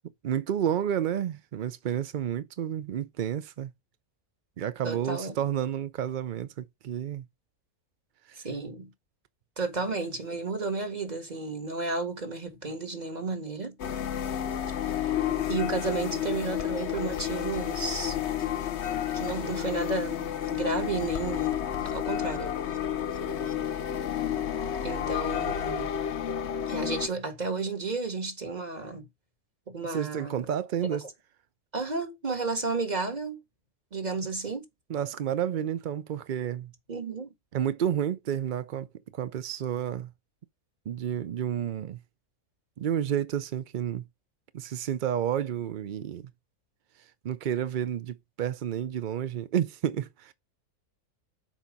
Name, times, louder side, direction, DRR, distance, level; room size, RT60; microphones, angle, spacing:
voice 1, 0.2-3.7 4.6-7.3 8.3-8.4 29.9-31.0 34.9-36.7 37.5-38.9 39.1-40.1 40.9-42.0 42.8-44.0 44.5-46.3 47.2-50.3, right 10 dB, 85° right, 0.4 m, -30 dB
voice 2, 4.8-5.3 8.4-8.9 9.6-13.7 14.8-15.0 15.5-18.2 19.1-22.5 24.8-25.9 26.7-29.1 29.7-30.4 30.9-31.0 31.7-33.4 33.9-34.7 36.9-37.3, right 3 dB, 30° right, 1.8 m, -32 dB
sound 1, 13.8-27.1, left 9 dB, 55° left, 0.9 m, -31 dB
7.1 x 4.5 x 5.2 m
omnidirectional pair, 1.6 m